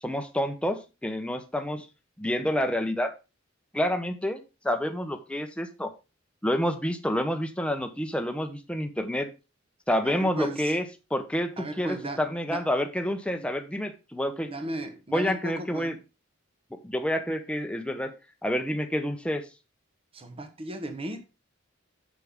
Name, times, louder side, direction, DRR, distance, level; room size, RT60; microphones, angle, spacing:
voice 1, 0.0-1.9 2.2-3.1 3.7-5.9 6.4-9.3 9.9-10.8 11.1-14.5 15.1-16.0 16.7-18.1 18.4-19.4, equal, 5° left, 0.9 m, -28 dB
voice 2, 10.0-10.8 11.6-12.7 13.4-13.5 14.4-15.9 20.1-21.2, right 1 dB, 30° right, 1.0 m, -36 dB
7.7 x 7.3 x 3.6 m
head